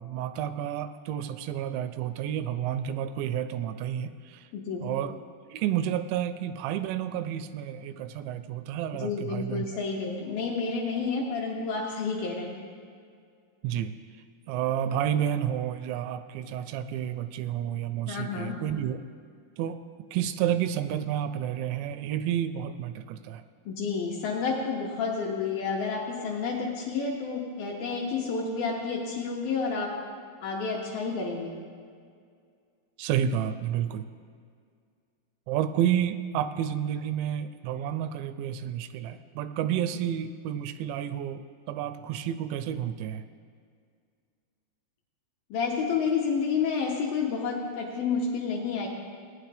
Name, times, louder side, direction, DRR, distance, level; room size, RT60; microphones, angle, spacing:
voice 1, 0.0-4.5 4.8-5.1 5.5-9.7 13.6-14.0 14.5-19.0 19.6-19.8 20.1-23.4 33.0-34.1 35.5-41.4 41.7-43.2, right 10 dB, 85° right, 11 dB, 2.8 m, -30 dB
voice 2, 4.5-4.9 8.9-12.6 18.1-18.6 23.7-29.9 30.4-31.6 45.5-48.9, left 5 dB, 70° left, -2 dB, 2.3 m, -30 dB
18.5 x 9.7 x 3.4 m, 2.1 s
omnidirectional pair, 5.2 m